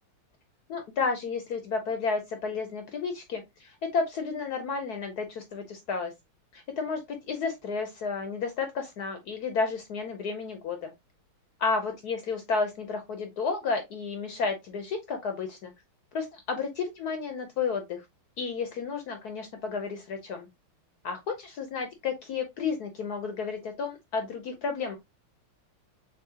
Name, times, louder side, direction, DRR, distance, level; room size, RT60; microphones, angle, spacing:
voice 1, 0.7-6.1 6.5-10.9 11.6-15.7 16.1-18.0 18.4-20.5 21.0-25.0, left 4 dB, 65° left, 1.0 m, -32 dB
6.3 x 2.7 x 2.7 m
omnidirectional pair, 2.3 m